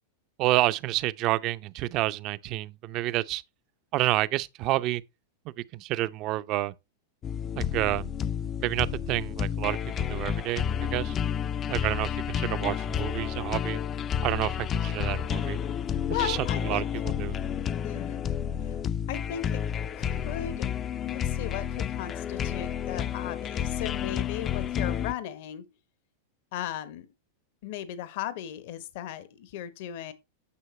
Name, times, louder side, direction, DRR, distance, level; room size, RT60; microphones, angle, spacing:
voice 1, 0.4-3.4 3.9-5.0 5.7-6.7 7.6-8.1 8.6-9.8 10.1-11.2 11.7-13.8 14.2-15.6 16.2-16.4 16.7-16.8 17.2-17.4, right 16 dB, 45° right, 0.5 m, -29 dB
sound 1, 7.2-25.1, left 8 dB, 30° left, 0.4 m, -30 dB
voice 2, 16.1-16.9 17.8-18.2 18.6-18.8 19.1-19.6 20.0-20.7 21.0-25.7 26.5-27.1 27.6-30.1, left 11 dB, 60° left, 1.1 m, -36 dB
9.8 x 6.6 x 3.2 m
hypercardioid pair, 110°, 0 cm